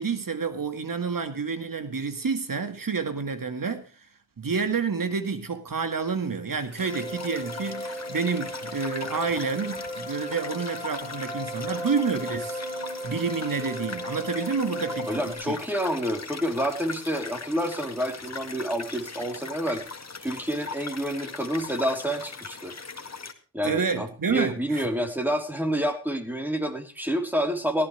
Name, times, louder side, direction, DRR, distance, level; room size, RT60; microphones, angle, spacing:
voice 1, 0.0-3.9 4.4-12.6 13.0-15.6 23.6-24.9, right 5 dB, 45° right, 2.0 m, -29 dB
sound 1, 6.6-23.3, left 4 dB, 35° left, 2.0 m, -40 dB
sound 2, 6.8-15.3, equal, 75° right, 5.6 m, -36 dB
voice 2, 15.1-19.8 20.2-22.7 23.5-27.9, equal, 5° right, 3.7 m, -28 dB
18.0 x 13.0 x 3.4 m
supercardioid pair, 45°, 45 cm